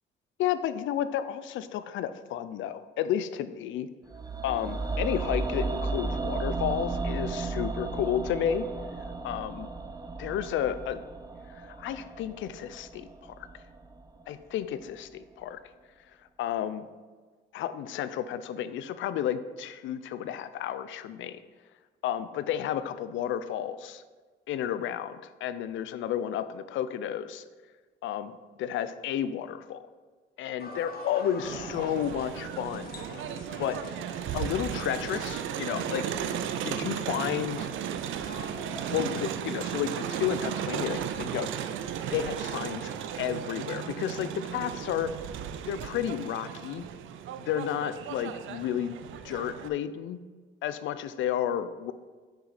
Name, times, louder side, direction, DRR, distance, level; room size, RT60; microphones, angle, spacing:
voice 1, 0.4-3.9 4.4-8.7 9.2-9.7 10.2-11.0 11.5-13.3 14.3-15.6 16.4-16.9 17.5-21.4 22.0-24.0 24.5-27.4 28.0-29.8 30.4-32.9 33.6-33.8 34.3-36.0 36.6-37.7 38.9-41.5 42.1-42.9 43.2-45.1 45.7-46.8 47.4-48.9 49.2-50.2 50.6-51.9, left 10 dB, 75° left, 13 dB, 0.4 m, -32 dB
sound 1, 4.1-14.2 14.5-14.6, right 3 dB, 20° right, 0.5 m, -34 dB
sound 2, 30.6-38.9, left 2 dB, 50° left, 1.1 m, -46 dB
Crowd, 31.4-49.7, right 9 dB, 75° right, 0.5 m, -35 dB
6.3 x 4.9 x 4.1 m, 1.4 s
cardioid pair, 90°, 20 cm